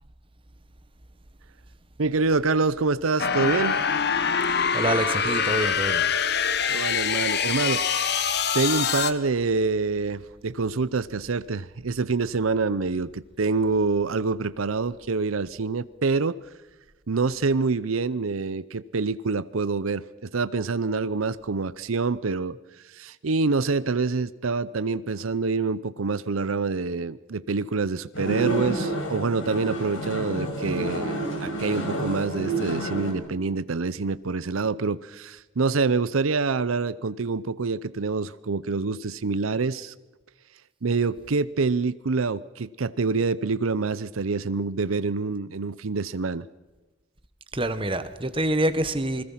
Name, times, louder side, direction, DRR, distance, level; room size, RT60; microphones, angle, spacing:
voice 1, 2.0-3.8 6.7-8.2 8.5-16.4 17.1-22.6 22.8-39.9 40.8-46.5, right 4 dB, 90° right, 0.7 m, -26 dB
sound 1, 3.2-9.1, left 6 dB, 55° left, 1.4 m, -24 dB
voice 2, 4.5-6.0 47.5-49.2, right 1 dB, 25° right, 1.3 m, -26 dB
sound 2, 28.1-33.1, right 1 dB, 70° left, 5.4 m, -29 dB
28.0 x 21.0 x 5.8 m
head